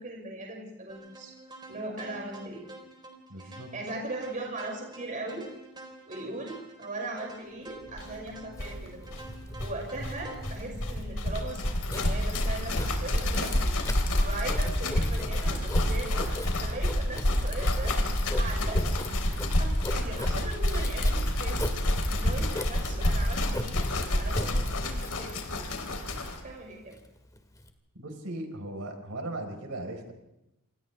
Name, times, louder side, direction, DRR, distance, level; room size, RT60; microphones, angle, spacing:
voice 1, 0.0-1.3 1.7-2.6 3.4-5.5 6.0-9.0 9.6-11.6 11.9-13.5 14.2-18.0 18.4-18.9 19.5-23.8 24.2-25.4 26.2-27.0, right 2 dB, 35° right, 0 dB, 5.9 m, -39 dB
sound 1, 0.9-10.6, right 2 dB, 20° right, 4.2 m, -48 dB
voice 2, 3.3-3.7 28.0-30.1, right 1 dB, 70° right, 4 dB, 4.5 m, -38 dB
sound 2, 8.0-8.1 8.3-8.4 8.5-26.4, left 1 dB, 85° left, 3.8 m, -28 dB
Writing, 8.5-27.7, left 1 dB, 15° left, 2.2 m, -40 dB
28.5 x 27.5 x 3.4 m, 0.88 s
head